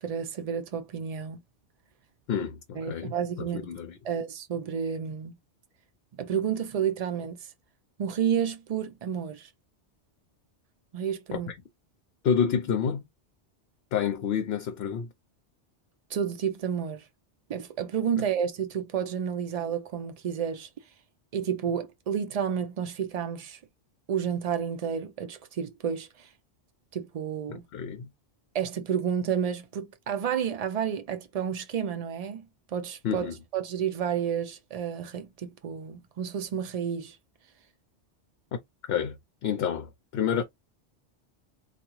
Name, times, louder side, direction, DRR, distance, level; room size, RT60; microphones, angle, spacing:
voice 1, 0.0-1.4 2.8-3.7 4.0-5.3 6.2-7.5 8.0-9.5 10.9-11.5 16.1-17.1 17.5-20.7 21.3-23.6 24.1-26.3 26.9-27.6 28.5-32.5 32.7-37.2, right 8 dB, 80° right, 0.3 m, -30 dB
voice 2, 2.3-4.0 11.3-11.5 12.2-13.0 13.9-15.1 27.5-28.1 33.0-33.4 38.8-39.2 39.4-40.4, left 7 dB, 65° left, 0.8 m, -29 dB
3.5 x 2.3 x 2.9 m
omnidirectional pair, 1.2 m